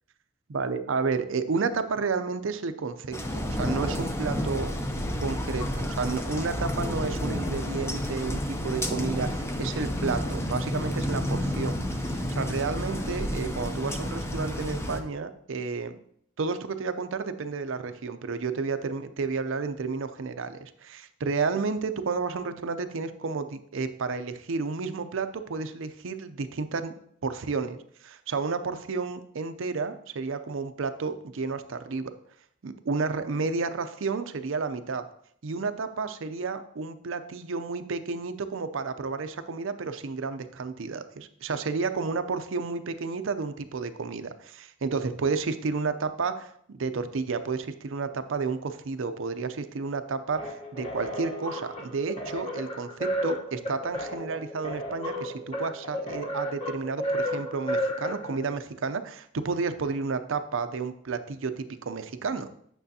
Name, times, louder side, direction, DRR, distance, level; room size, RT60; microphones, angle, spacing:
voice 1, 0.5-4.7 5.2-16.0 16.4-26.9 27.2-32.1 32.6-35.0 35.4-62.5, right 4 dB, 65° right, 10 dB, 0.5 m, -31 dB
sound 1, 3.1-15.0, equal, 15° left, 0.5 m, -30 dB
sound 2, 50.4-58.6, equal, 30° left, 1.1 m, -33 dB
9.1 x 6.1 x 2.8 m, 0.67 s
head